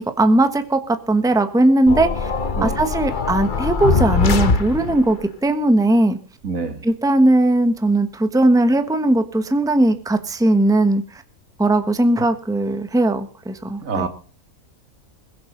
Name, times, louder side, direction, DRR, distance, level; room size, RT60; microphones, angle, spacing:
voice 1, 0.0-2.3 2.6-6.2 6.8-11.2 11.6-14.1, right 1 dB, 5° right, 8 dB, 1.1 m, -18 dB
sound 1, 1.9-5.2, left 4 dB, 40° left, 1.1 m, -22 dB
voice 2, 6.4-6.8 13.8-14.1, right 4 dB, 75° right, 8 dB, 2.5 m, -25 dB
21.5 x 7.6 x 6.6 m, 0.40 s
omnidirectional pair, 1.4 m